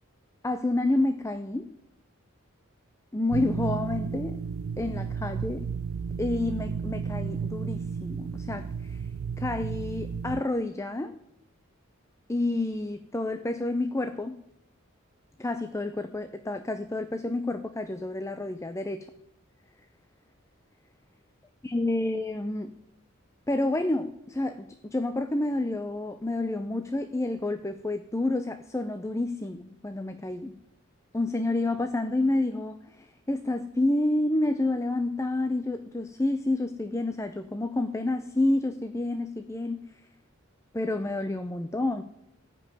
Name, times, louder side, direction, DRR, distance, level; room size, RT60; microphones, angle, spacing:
voice 1, 0.4-1.7 3.1-4.4 4.8-5.7 6.2-9.0 9.4-11.2 12.3-14.4 15.4-19.1 21.6-22.7 23.5-30.6 31.1-39.8 40.7-42.0, left 2 dB, 15° left, 9 dB, 0.6 m, -29 dB
sound 1, 3.3-10.4, right 6 dB, 80° right, 0.4 m, -33 dB
14.5 x 5.4 x 9.7 m, 0.84 s
head